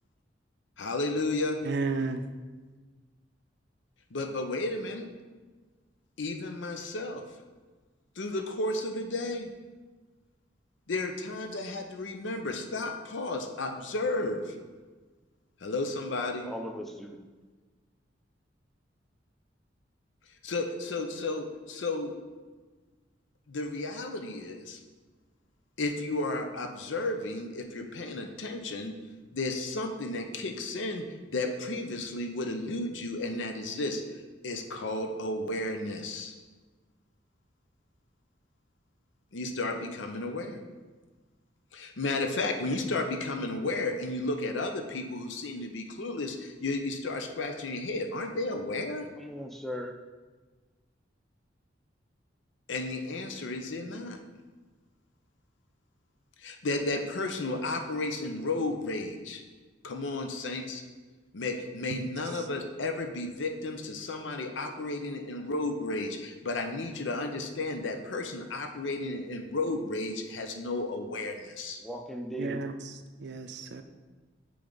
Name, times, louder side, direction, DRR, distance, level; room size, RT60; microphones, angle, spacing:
voice 1, 0.8-1.6 4.1-5.1 6.2-7.2 8.2-9.5 10.9-14.5 15.6-16.5 20.4-22.1 23.5-24.8 25.8-28.9 29.3-36.4 39.3-40.6 41.7-49.1 52.7-54.2 56.4-59.4 59.8-60.8 61.3-71.8, left 2 dB, 90° left, 5 dB, 0.7 m, -33 dB
voice 2, 1.6-2.3 61.9-62.0 72.4-72.7 73.2-73.8, right 3 dB, 65° right, 7 dB, 0.5 m, -32 dB
voice 3, 16.4-17.2 49.2-50.0 71.8-72.6, equal, ahead, 3 dB, 0.5 m, -38 dB
8.4 x 3.4 x 3.9 m, 1.3 s
head